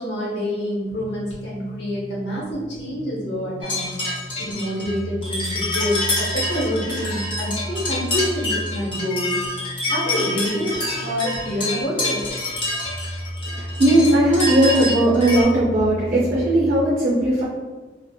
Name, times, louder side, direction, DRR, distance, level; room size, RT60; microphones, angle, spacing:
voice 1, 0.0-3.9 4.4-9.4 9.9-10.8 11.0-12.2, left 1 dB, 70° left, -5 dB, 0.8 m, -27 dB
sound 1, 0.8-16.8, equal, 10° right, 1.1 m, -35 dB
sound 2, 3.6-15.4, left 1 dB, 30° left, 0.5 m, -27 dB
voice 2, 13.5-17.4, right 1 dB, 45° right, -7 dB, 0.5 m, -18 dB
2.8 x 2.0 x 2.2 m, 1.3 s
head